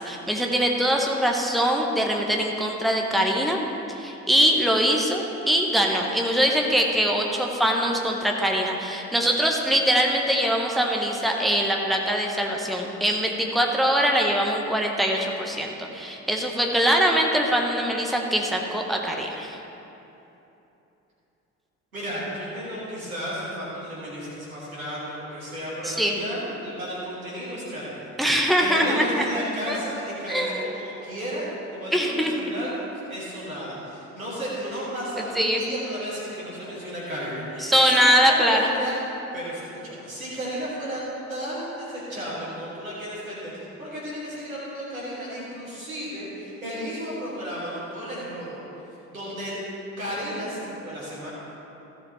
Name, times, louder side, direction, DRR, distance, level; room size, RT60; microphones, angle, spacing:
voice 1, 0.0-3.6 3.9-19.6 25.8-26.2 28.2-29.2 29.7-29.8 30.3-30.6 31.9-32.5 35.3-35.6 37.6-38.7, equal, ahead, 0 dB, 1.4 m, -23 dB
voice 2, 21.9-28.1 28.6-31.5 31.7-32.8 33.1-39.0 39.3-41.0 41.3-48.6 49.1-49.5 50.0-51.3, equal, 85° right, -8 dB, 2.5 m, -33 dB
16.0 x 7.2 x 3.3 m, 3.0 s
figure-of-eight pair, 50°, 41 cm